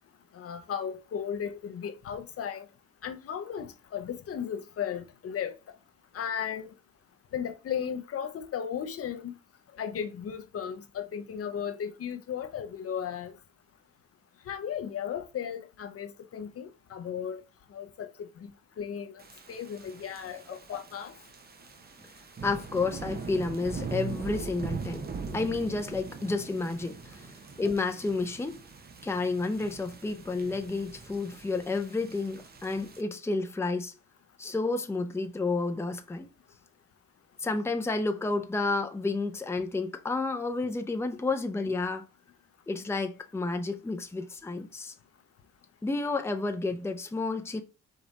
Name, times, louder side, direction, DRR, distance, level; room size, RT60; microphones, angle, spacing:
voice 1, 0.3-2.6 3.0-5.6 6.1-6.7 7.3-9.3 9.8-13.3 14.5-17.4 17.7-18.3 18.8-19.2 19.5-21.1, left 8 dB, 50° left, 0.6 m, -35 dB
sound 1, 19.2-33.0, right 5 dB, 30° right, 0.8 m, -42 dB
voice 2, 22.4-28.6 29.0-33.9 34.4-36.3 37.4-42.0 42.7-44.9 45.8-47.6, left 3 dB, 10° left, 0.6 m, -31 dB
5.1 x 2.5 x 4.0 m
cardioid pair, 90°, 30 cm